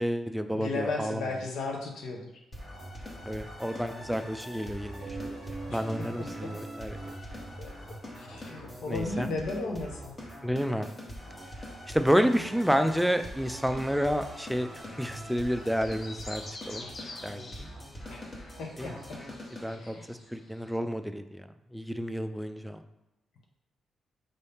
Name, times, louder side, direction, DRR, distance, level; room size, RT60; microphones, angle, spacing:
voice 1, 0.0-1.2 3.3-7.2 8.9-9.3 10.4-10.9 11.9-16.9 17.2-17.7 18.8-19.0 19.6-22.8, equal, ahead, 8 dB, 0.3 m, -30 dB
voice 2, 0.5-2.4 5.7-6.5 7.6-7.7 8.1-10.1 18.1-19.2 19.7-20.1, left 3 dB, 75° left, 1 dB, 0.9 m, -36 dB
sound 1, 2.5-19.7, equal, 25° left, 1.0 m, -43 dB
sound 2, 5.0-11.6, right 3 dB, 80° right, 0.5 m, -44 dB
sound 3, 12.4-20.8, left 2 dB, 50° left, 0.8 m, -49 dB
5.4 x 2.7 x 3.5 m, 0.96 s
cardioid pair, 120°, 0 cm